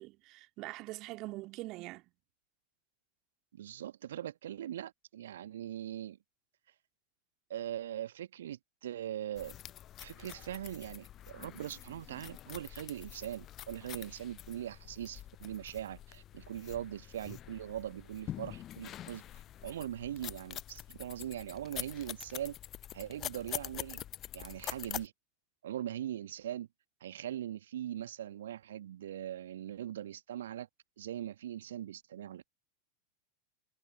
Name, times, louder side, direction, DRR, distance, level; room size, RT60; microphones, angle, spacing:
voice 1, 0.0-2.0, right 20 dB, 40° right, 2.1 m, -43 dB
voice 2, 3.5-6.2 7.5-9.5 10.0-19.2 19.6-22.6 22.9-24.0 24.3-25.1 25.6-26.7 27.0-30.7 31.0-32.4, right 11 dB, 65° right, 1.3 m, -41 dB
sound 1, 9.3-25.1, left 12 dB, 35° left, 0.5 m, -46 dB
figure-of-eight pair, 85°, 0 cm